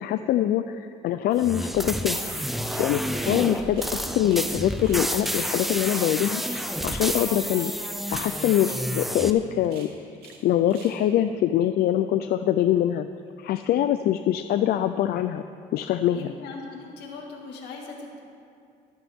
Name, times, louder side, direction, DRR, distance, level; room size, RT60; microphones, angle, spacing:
voice 1, 0.0-2.3 2.8-7.7 8.1-9.9 10.4-13.1 13.4-15.4 15.7-16.3, left 11 dB, 65° left, 10 dB, 0.5 m, -24 dB
sound 1, 1.4-9.3, equal, ahead, 0.6 m, -30 dB
sound 2, 2.1-2.3 2.7-4.0 4.3-4.5 4.8-6.1 6.4-6.7 6.9-7.8 8.1-8.3 8.6-8.8 9.1-9.3 9.6-10.4 10.7-11.0, right 5 dB, 75° right, 2.4 m, -48 dB
voice 2, 16.1-18.2, left 4 dB, 80° left, 1 dB, 2.0 m, -39 dB
22.5 x 8.9 x 3.6 m, 2.4 s
cardioid pair, 110°, 17 cm